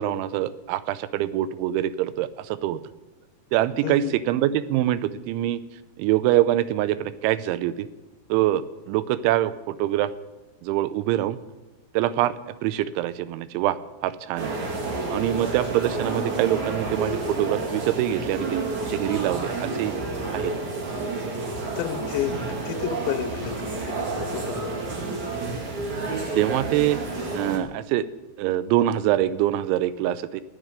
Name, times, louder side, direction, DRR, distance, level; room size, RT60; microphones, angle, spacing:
voice 1, 0.0-2.8 3.5-5.6 6.0-7.9 8.3-10.1 10.6-11.4 11.9-12.4 12.6-13.8 14.0-14.5 15.1-18.6 18.9-20.0 20.3-20.5 26.3-27.0 27.3-28.0 28.4-30.4, right 13 dB, 80° right, 15 dB, 2.9 m, -24 dB
voice 2, 3.8-4.2 21.8-22.3 22.6-25.0, left 13 dB, 80° left, 11 dB, 2.9 m, -31 dB
sound 1, 14.4-27.6, right 3 dB, 45° right, 3.1 m, -30 dB
14.0 x 10.0 x 9.8 m, 1.1 s
omnidirectional pair, 5.6 m